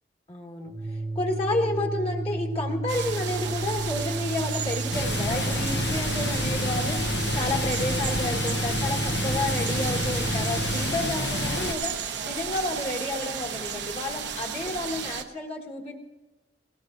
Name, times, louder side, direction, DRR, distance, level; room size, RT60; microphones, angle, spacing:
voice 1, 0.3-12.0 12.2-16.0, left 2 dB, 35° left, 1 dB, 1.6 m, -31 dB
Organ, 0.7-11.0, right 2 dB, 20° right, 0.6 m, -32 dB
sound 1, 2.9-15.2, right 7 dB, 85° right, 1.0 m, -34 dB
Water, 4.9-11.7, left 3 dB, 80° left, 0.9 m, -30 dB
19.5 x 19.0 x 2.6 m, 1.1 s
head